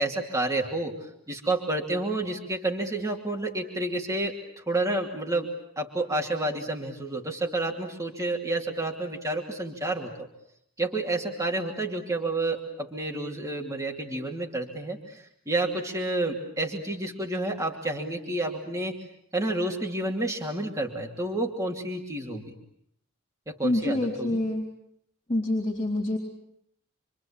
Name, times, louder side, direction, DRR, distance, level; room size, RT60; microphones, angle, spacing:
voice 1, 0.0-10.3 10.8-19.0 19.3-22.5 23.5-24.4, right 2 dB, 15° right, 1 dB, 2.7 m, -30 dB
voice 2, 23.6-24.6 25.3-26.2, left 1 dB, 25° left, 1 dB, 4.3 m, -26 dB
27.5 x 24.5 x 8.7 m, 0.70 s
head